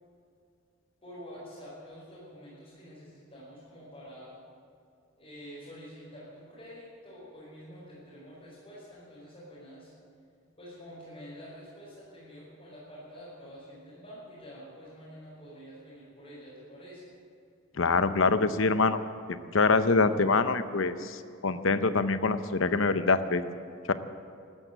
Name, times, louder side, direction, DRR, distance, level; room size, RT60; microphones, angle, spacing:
voice 1, 1.0-4.3 5.2-9.9 10.6-17.0, equal, 30° left, -10 dB, 5.3 m, -47 dB
voice 2, 17.8-19.0 19.3-23.4 23.9-24.0, left 4 dB, 70° left, 11 dB, 0.8 m, -25 dB
13.5 x 13.0 x 8.0 m, 2.4 s
head